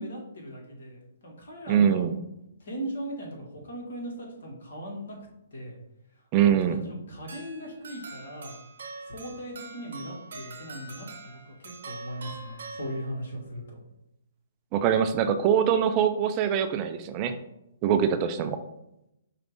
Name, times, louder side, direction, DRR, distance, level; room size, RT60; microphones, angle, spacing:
voice 1, 0.0-2.1 2.6-5.1 5.5-5.8 6.4-6.5 6.8-8.6 9.1-11.4 11.8-13.8, right 1 dB, 70° left, -1 dB, 1.5 m, -38 dB
voice 2, 1.7-2.1 6.3-6.8 14.7-17.4 17.8-18.6, right 8 dB, 30° right, 9 dB, 0.4 m, -23 dB
sound 1, 7.3-13.4, right 3 dB, 65° right, 0.8 m, -44 dB
5.0 x 2.4 x 3.5 m, 0.85 s
hypercardioid pair, 130°, 0 cm